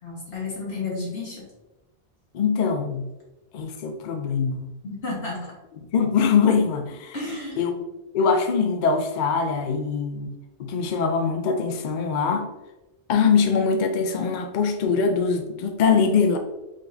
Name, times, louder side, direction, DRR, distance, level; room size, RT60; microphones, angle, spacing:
voice 1, 0.0-1.5 4.8-5.4 7.1-7.6, left 3 dB, 85° left, -4 dB, 1.9 m, -31 dB
voice 2, 2.3-3.1 3.5-4.7 5.9-7.2 7.6-7.8 8.1-10.3 10.6-12.5 13.1-16.4, left 5 dB, 60° left, 6 dB, 0.6 m, -22 dB
5.0 x 3.9 x 2.6 m, 1.0 s
omnidirectional pair, 1.0 m